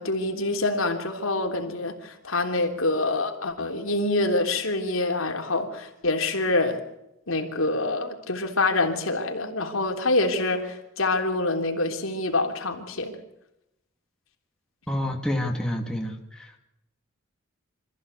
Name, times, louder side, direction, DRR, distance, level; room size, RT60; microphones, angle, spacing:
voice 1, 0.0-6.8 7.3-13.2, left 2 dB, 80° left, 4 dB, 3.5 m, -26 dB
voice 2, 14.9-16.6, left 1 dB, 5° left, 1 dB, 2.6 m, -28 dB
26.0 x 15.0 x 8.3 m, 0.88 s
head